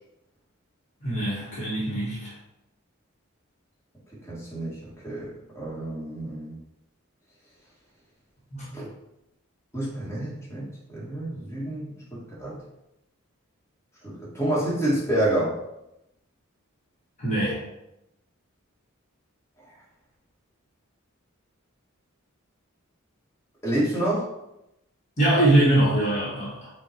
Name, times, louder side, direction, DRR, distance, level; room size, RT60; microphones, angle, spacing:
voice 1, 1.0-2.3 8.5-8.8 17.2-17.6 25.2-26.7, right 1 dB, 35° left, -7 dB, 1.2 m, -23 dB
voice 2, 4.3-4.8 5.0-6.6 8.7-8.9 9.7-12.6 14.0-15.6 23.6-24.3, right 1 dB, 15° left, -7 dB, 1.4 m, -28 dB
5.3 x 2.3 x 4.4 m, 0.85 s
head